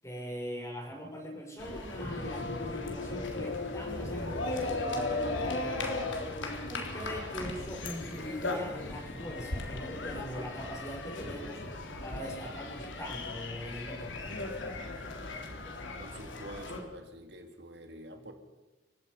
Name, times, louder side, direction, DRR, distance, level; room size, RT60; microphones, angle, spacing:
voice 1, 0.0-6.1 6.7-11.6 12.0-14.3, equal, 15° left, 0 dB, 6.9 m, -42 dB
sound 1, 1.6-16.8, left 2 dB, 85° left, 3.7 m, -37 dB
sound 2, 1.9-16.5, left 4 dB, 55° left, 0.7 m, -45 dB
sound 3, 1.9-15.6, equal, 30° left, 6.7 m, -49 dB
voice 2, 16.0-18.3, right 1 dB, 65° right, 5 dB, 2.5 m, -47 dB
29.0 x 16.5 x 5.6 m, 1.2 s
head